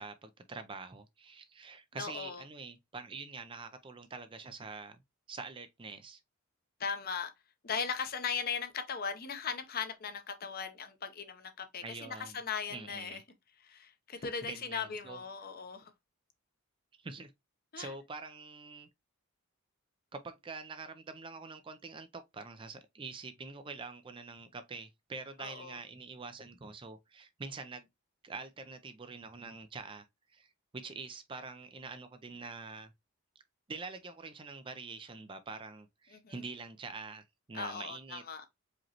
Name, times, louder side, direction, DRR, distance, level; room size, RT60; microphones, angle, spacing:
voice 1, 0.0-5.0 5.3-6.2 11.8-12.4 12.7-13.2 14.1-15.2 17.0-17.3 17.8-18.9 20.1-27.9 28.2-32.9 33.7-38.2, right 4 dB, 25° right, 0.4 m, -45 dB
voice 2, 1.9-2.4 6.8-7.3 7.6-13.2 13.6-15.9 17.7-17.9 25.4-25.8 36.1-36.4 37.5-38.4, left 6 dB, 40° left, 0.7 m, -38 dB
5.0 x 3.0 x 2.8 m
head